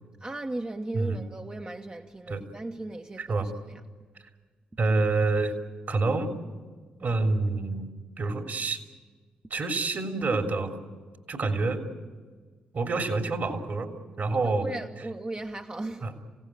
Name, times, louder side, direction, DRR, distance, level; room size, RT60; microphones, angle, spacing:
voice 1, 0.2-3.5 14.4-16.1, right 2 dB, 25° right, 1.0 m, -36 dB
voice 2, 3.2-3.5 4.8-5.5 5.9-6.3 7.0-7.9 8.2-8.8 9.5-10.7 11.3-11.8 12.7-13.9 14.2-14.7 16.0-16.1, right 3 dB, 55° right, 3.2 m, -27 dB
27.0 x 17.0 x 9.2 m
hypercardioid pair, 40°, 4 cm